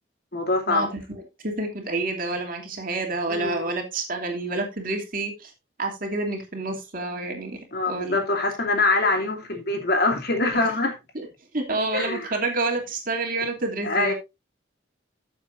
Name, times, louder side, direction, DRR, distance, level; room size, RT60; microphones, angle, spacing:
voice 1, 0.3-0.9 3.3-3.7 7.7-10.9 11.9-12.3 13.8-14.1, left 3 dB, 55° left, 2.8 m, -24 dB
voice 2, 1.4-5.5 5.8-7.6 7.9-8.2 11.1-11.3 11.5-14.1, right 2 dB, 45° right, 2.9 m, -28 dB
14.5 x 7.4 x 2.6 m
head